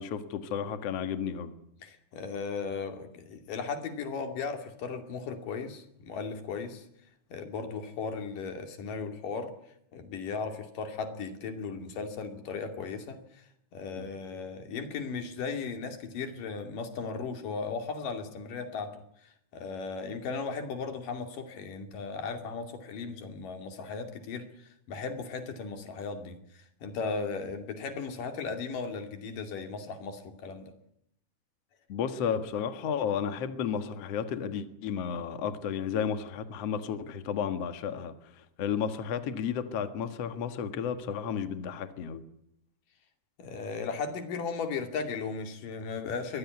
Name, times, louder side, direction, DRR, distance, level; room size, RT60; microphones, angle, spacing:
voice 1, 0.0-1.5 14.0-14.1 31.9-42.2, left 7 dB, 80° left, 9 dB, 1.4 m, -33 dB
voice 2, 1.8-6.8 7.3-9.5 9.9-13.4 13.7-30.7 43.4-46.4, left 5 dB, 50° left, 7 dB, 3.6 m, -36 dB
23.0 x 19.0 x 9.5 m, 0.74 s
omnidirectional pair, 5.7 m